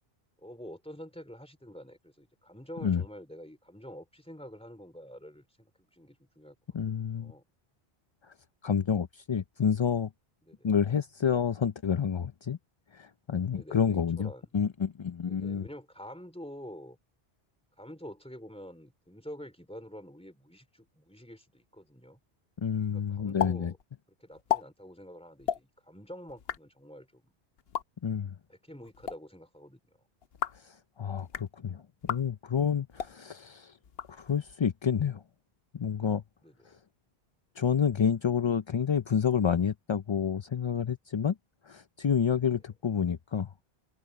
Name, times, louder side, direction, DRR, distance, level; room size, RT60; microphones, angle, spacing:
voice 1, 0.4-6.6 7.0-7.4 10.4-10.7 13.5-14.5 15.2-17.0 17.8-22.2 22.9-23.8 24.2-27.3 28.5-29.8 36.4-36.7 42.4-42.5, equal, 5° left, 3.8 m, -47 dB
voice 2, 6.7-7.3 8.2-8.3 8.6-10.1 10.6-12.6 12.9-15.6 22.6-23.7 28.0-28.3 30.5-33.8 34.1-35.2 35.7-36.2 36.7-36.8 37.6-41.4 41.6-43.5, left 7 dB, 45° left, 0.4 m, -29 dB
sound 1, 23.4-23.5 23.8-23.9 24.3-24.6 25.4-25.6 26.3-26.6 27.6-27.8 28.8-29.2 30.2-30.6 31.2-31.5 32.0-32.2 32.9-33.1 33.8-34.5, left 9 dB, 70° left, 1.0 m, -33 dB
open air
omnidirectional pair, 1.1 m